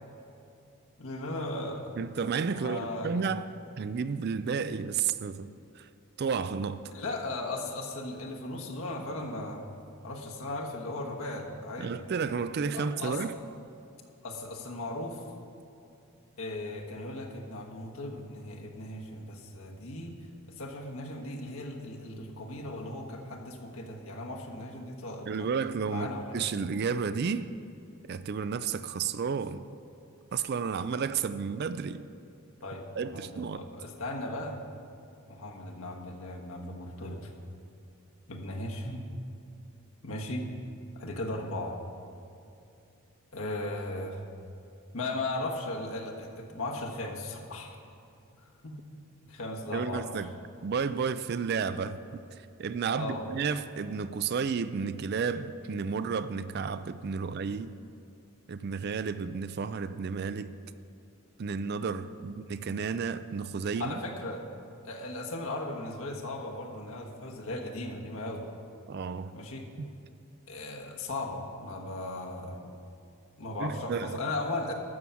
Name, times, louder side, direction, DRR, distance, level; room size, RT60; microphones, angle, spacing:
voice 1, 1.0-1.9 2.5-3.3 6.9-9.7 10.0-12.0 12.7-13.2 14.2-15.2 16.4-20.2 20.5-25.5 25.9-26.4 32.6-34.6 35.3-37.3 38.3-39.0 40.0-40.5 40.9-41.8 43.3-44.2 44.9-47.8 48.6-48.8 49.3-50.1 52.9-53.3 63.8-64.5 64.8-68.4 69.3-69.7 70.5-72.8 73.4-74.7, left 2 dB, 70° left, 1.4 m, -37 dB
voice 2, 2.0-3.5 3.8-5.5 5.8-5.9 6.2-6.8 11.8-13.4 25.3-26.1 26.3-27.5 28.1-29.7 30.3-32.0 32.9-33.6 49.7-50.3 50.6-57.8 58.5-60.5 61.4-64.0 68.9-69.3 69.8-69.9 73.6-74.2, right 5 dB, 45° right, 0.3 m, -32 dB
13.0 x 7.1 x 5.8 m
head